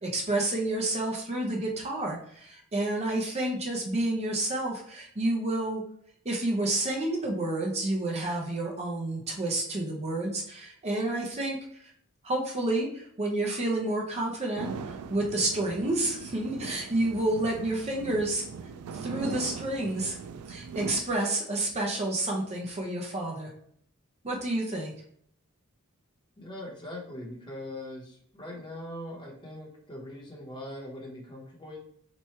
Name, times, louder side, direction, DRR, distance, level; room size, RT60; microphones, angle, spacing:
voice 1, 0.0-5.8 6.2-11.9 12.2-18.4 18.9-20.2 20.5-23.5 24.2-24.9, right 2 dB, 30° right, 0 dB, 0.5 m, -30 dB
sound 1, 14.6-21.0, right 5 dB, 80° right, 0.3 m, -40 dB
voice 2, 26.4-31.8, left 1 dB, 20° left, -2 dB, 0.9 m, -41 dB
3.0 x 2.3 x 4.2 m, 0.66 s
head